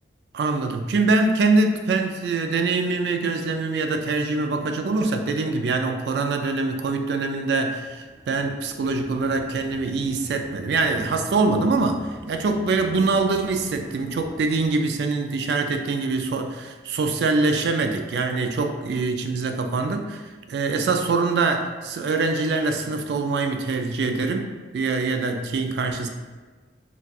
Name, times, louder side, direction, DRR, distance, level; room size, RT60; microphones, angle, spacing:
voice 1, 0.3-20.2 20.5-26.1, right 3 dB, 70° right, 5 dB, 0.3 m, -24 dB
sound 1, 7.8-14.8, equal, 5° left, 0.3 m, -45 dB
4.0 x 2.3 x 2.3 m, 1.4 s
head